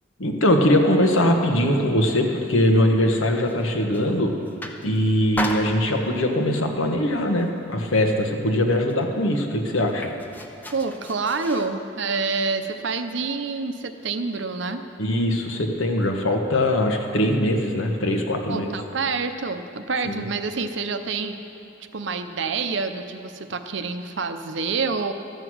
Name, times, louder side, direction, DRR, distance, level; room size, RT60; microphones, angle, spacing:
voice 1, 0.2-4.3 4.8-10.1 15.0-18.7 20.1-20.2, left 1 dB, 80° left, 3 dB, 1.2 m, -21 dB
throwing rock, 3.5-4.1 4.5-5.0 5.4-6.3 6.9-7.1 7.4-8.3 8.6-8.7 8.9-11.7, left 1 dB, 10° left, 0.6 m, -35 dB
voice 2, 10.7-14.8 18.5-21.4 21.9-25.1, right 4 dB, 65° right, 8 dB, 0.7 m, -27 dB
13.0 x 7.9 x 6.2 m, 2.7 s
head